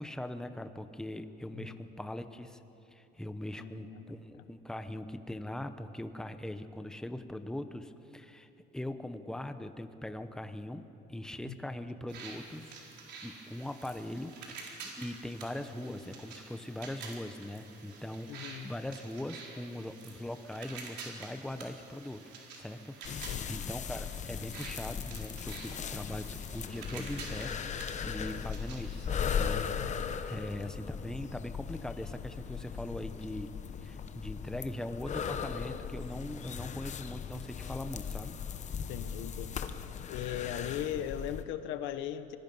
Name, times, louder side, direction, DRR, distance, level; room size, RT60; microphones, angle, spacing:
voice 1, 0.0-2.6 2.9-10.8 11.1-12.8 13.2-22.2 22.5-27.5 28.0-33.5 33.8-38.4, left 1 dB, 5° left, 9 dB, 0.9 m, -41 dB
voice 2, 1.5-1.8 3.6-4.4 11.4-11.6 18.3-18.7 23.0-23.6 29.8-30.2 38.9-39.6 40.1-42.4, left 10 dB, 90° left, 11 dB, 1.0 m, -39 dB
sound 1, 12.1-29.1, right 4 dB, 65° right, 4.2 m, -49 dB
sound 2, 23.0-41.4, left 7 dB, 40° left, 0.9 m, -38 dB
25.0 x 20.0 x 5.5 m, 2.9 s
cardioid pair, 125°, 19 cm